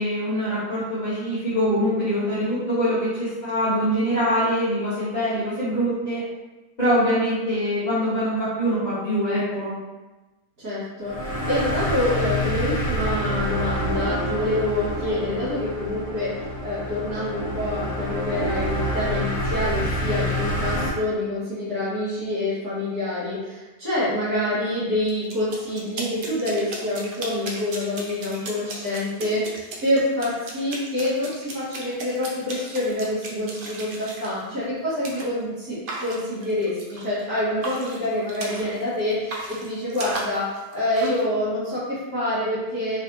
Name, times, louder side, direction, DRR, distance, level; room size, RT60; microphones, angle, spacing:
voice 1, 0.0-6.2 6.8-9.7, equal, 30° left, -13 dB, 1.1 m, -24 dB
voice 2, 10.6-43.0, left 1 dB, 75° right, -11 dB, 1.9 m, -27 dB
sound 1, 11.0-20.9, equal, 65° left, 1.4 m, -27 dB
sound 2, 25.1-34.3 35.0-35.3 35.9-37.3 37.6-38.8 39.1-41.2, right 2 dB, 55° right, 0.6 m, -36 dB
4.1 x 3.2 x 2.9 m, 1.1 s
omnidirectional pair, 1.6 m